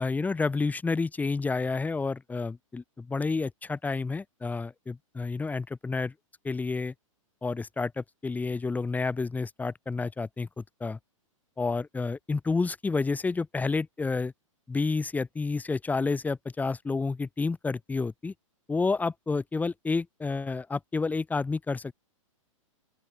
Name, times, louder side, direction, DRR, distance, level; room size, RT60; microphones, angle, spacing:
voice 1, 0.0-6.1 6.4-6.9 7.4-11.0 11.6-14.3 14.7-18.3 18.7-21.9, left 4 dB, 10° left, 1.7 m, -30 dB
open air
hypercardioid pair, 120°, 17 cm